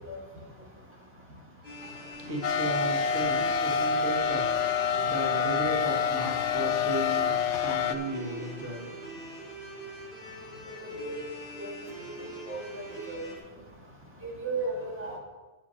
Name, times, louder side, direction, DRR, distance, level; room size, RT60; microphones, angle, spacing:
sound 1, 1.6-13.4, right 1 dB, 45° left, 3.3 m, -44 dB
voice 1, 1.8-9.3, right 1 dB, 75° right, 0 dB, 1.7 m, -36 dB
sound 2, 2.4-8.0, left 6 dB, 90° left, 0.9 m, -27 dB
voice 2, 11.5-12.1 12.5-12.6 12.9-13.2 14.2-15.2, right 3 dB, 10° right, -4 dB, 2.2 m, -35 dB
9.4 x 6.4 x 5.6 m, 1.2 s
omnidirectional pair, 1.2 m